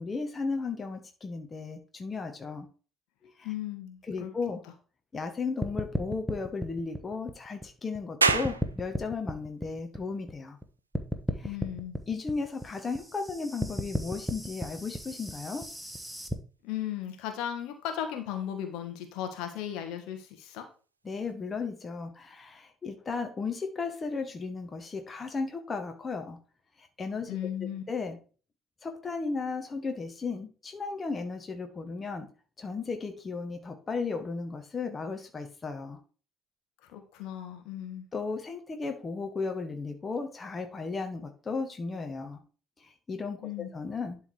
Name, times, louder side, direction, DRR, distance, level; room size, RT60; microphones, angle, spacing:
voice 1, 0.0-2.7 3.2-3.5 4.0-4.6 5.1-10.6 11.4-11.6 12.1-15.7 21.0-26.4 26.8-27.4 27.9-28.2 28.8-32.3 32.6-36.0 38.1-42.4 42.8-44.3, left 4 dB, 30° left, 5 dB, 1.4 m, -35 dB
voice 2, 3.4-4.3 11.4-11.9 16.6-20.6 27.3-27.8 36.9-38.0 43.4-43.7, left 10 dB, 60° left, 5 dB, 1.5 m, -36 dB
sound 1, 5.6-8.0 8.3-10.6 10.9-16.3, equal, 5° right, 1.3 m, -34 dB
sound 2, 8.2-21.3, right 4 dB, 85° right, 0.4 m, -38 dB
11.0 x 3.8 x 4.7 m, 0.37 s
figure-of-eight pair, 50°, 0 cm